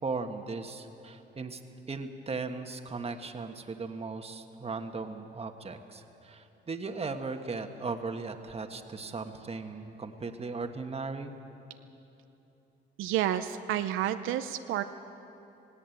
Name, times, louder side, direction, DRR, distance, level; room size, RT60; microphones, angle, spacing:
voice 1, 0.0-1.6 1.9-11.3, right 4 dB, 30° right, 6 dB, 1.5 m, -37 dB
voice 2, 13.0-14.8, right 11 dB, 90° right, 9 dB, 0.7 m, -30 dB
17.5 x 17.0 x 9.2 m, 3.0 s
cardioid pair, 90°, 20 cm